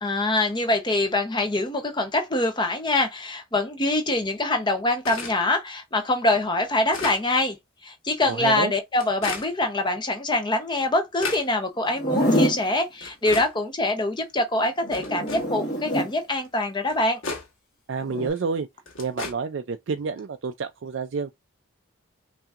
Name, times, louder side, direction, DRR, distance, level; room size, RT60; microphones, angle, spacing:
voice 1, 0.0-7.6 7.8-17.2, left 2 dB, 20° left, 0.8 m, -24 dB
sound 1, 5.0-5.4 6.0-6.1 6.6-7.2 8.2-8.3 8.9-9.5 10.3-10.4 10.8-11.5 12.3-12.4 13.0-13.5 14.2-14.3 14.9-15.5 16.4-16.5 16.9-17.5 18.3-18.4 18.9-19.3, left 4 dB, 65° left, 1.3 m, -34 dB
voice 2, 8.3-8.7 17.9-18.7 19.0-21.3, right 5 dB, 60° right, 0.4 m, -29 dB
Zipper (clothing), 11.9-12.7 14.8-16.1 18.0-18.3, equal, 40° left, 1.8 m, -25 dB
5.5 x 2.7 x 2.4 m
head